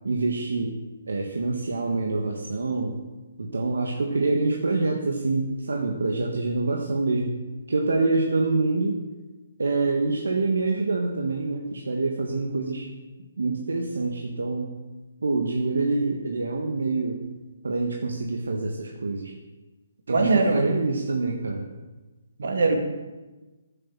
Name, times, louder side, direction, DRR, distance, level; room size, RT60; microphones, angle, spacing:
voice 1, 0.0-0.7 1.1-3.0 3.4-7.4 7.7-9.0 9.6-12.9 13.4-14.7 15.2-17.2 17.6-19.3 20.1-21.7, right 3 dB, 85° right, 1 dB, 1.5 m, -26 dB
voice 2, 20.1-20.7 22.4-22.8, right 3 dB, 65° right, 3 dB, 2.3 m, -21 dB
10.5 x 7.6 x 7.5 m, 1.2 s
hypercardioid pair, 150°, 0 cm